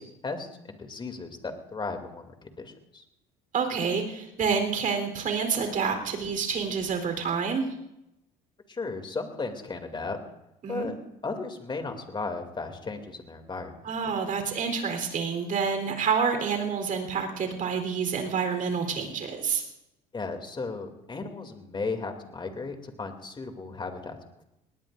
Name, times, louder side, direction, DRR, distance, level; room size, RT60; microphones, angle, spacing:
voice 1, 0.0-3.0 8.7-10.2 10.7-11.0 11.2-13.9 20.1-24.2, left 3 dB, 25° left, 5 dB, 2.7 m, -35 dB
voice 2, 3.5-7.7 10.6-10.9 13.8-19.6, right 6 dB, 50° right, 5 dB, 3.9 m, -28 dB
19.5 x 19.5 x 2.6 m, 0.86 s
hypercardioid pair, 70°, 18 cm